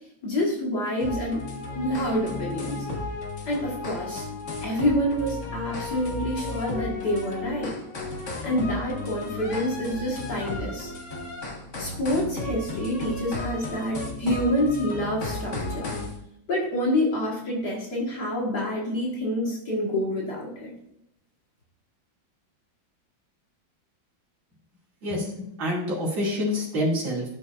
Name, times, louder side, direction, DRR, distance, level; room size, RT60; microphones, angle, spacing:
voice 1, 0.2-1.5 1.8-2.9 3.5-4.3 4.6-7.7 8.4-10.9 11.8-15.9 16.5-20.7, left 1 dB, 55° left, -3 dB, 2.2 m, -27 dB
sound 1, 1.0-16.2, left 2 dB, 40° left, 1.6 m, -34 dB
voice 2, 25.0-27.2, left 1 dB, 70° right, -5 dB, 3.3 m, -27 dB
12.0 x 6.2 x 2.5 m, 0.78 s
omnidirectional pair, 2.2 m